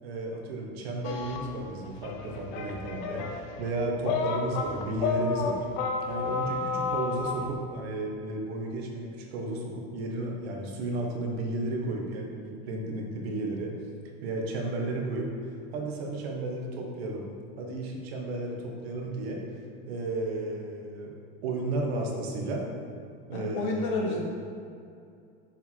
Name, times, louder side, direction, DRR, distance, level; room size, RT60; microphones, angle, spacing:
voice 1, 0.0-5.7 6.1-13.8 14.2-17.3 17.6-19.4 19.9-21.1 21.4-22.7 23.3-24.2, right 2 dB, 80° right, 1 dB, 1.6 m, -33 dB
sound 1, 1.0-7.5, left 4 dB, 35° left, 0.7 m, -31 dB
voice 2, 23.3-24.2, left 3 dB, 60° left, -1 dB, 1.8 m, -31 dB
6.7 x 6.1 x 4.7 m, 2.5 s
supercardioid pair, 180°, 31 cm